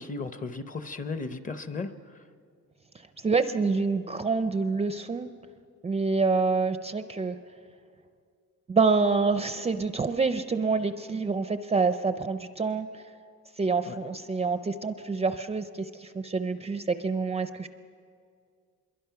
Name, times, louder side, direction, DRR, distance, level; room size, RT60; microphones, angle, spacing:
voice 1, 0.0-1.9 13.9-14.0, left 3 dB, 25° left, 10 dB, 0.7 m, -35 dB
voice 2, 3.2-5.3 5.8-7.4 8.7-12.9 13.6-17.7, right 4 dB, 20° right, 9 dB, 0.4 m, -27 dB
25.5 x 22.5 x 5.8 m, 2.2 s
wide cardioid pair, 175°, 31 cm